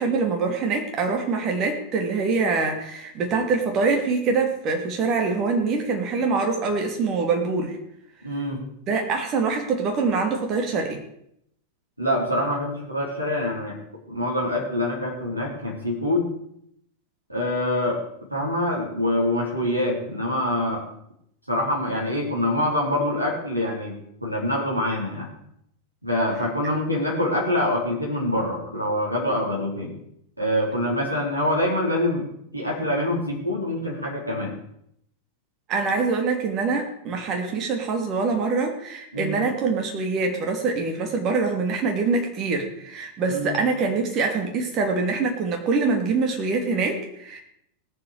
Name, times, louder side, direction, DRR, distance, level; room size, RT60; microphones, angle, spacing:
voice 1, 0.0-7.8 8.9-11.0 35.7-47.4, right 4 dB, 35° right, 3 dB, 2.9 m, -24 dB
voice 2, 8.2-8.6 12.0-13.8 14.1-16.3 17.3-18.0 18.3-20.9 21.5-25.3 26.0-29.9 30.4-32.3 32.5-34.5 39.1-39.4 43.3-43.6, left 1 dB, 85° right, -4 dB, 3.8 m, -25 dB
19.0 x 7.5 x 5.1 m, 0.73 s
figure-of-eight pair, 90°, 0 cm